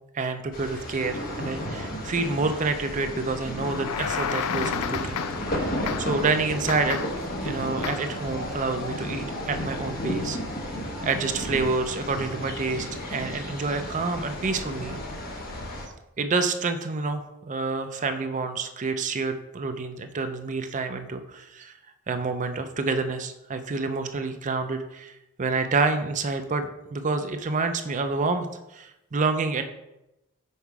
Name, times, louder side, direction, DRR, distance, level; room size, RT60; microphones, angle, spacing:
voice 1, 0.1-5.2 6.0-7.0 7.4-10.4 11.0-15.0 16.2-21.7 22.1-28.5 28.7-29.6, right 4 dB, 35° right, 8 dB, 0.4 m, -28 dB
sound 1, 0.5-15.9, left 1 dB, 40° left, 1.0 m, -33 dB
sound 2, 3.6-5.6 5.9-6.3 6.7-7.3 7.8-8.2, left 8 dB, 85° left, 0.4 m, -32 dB
5.6 x 4.5 x 4.7 m, 0.90 s
head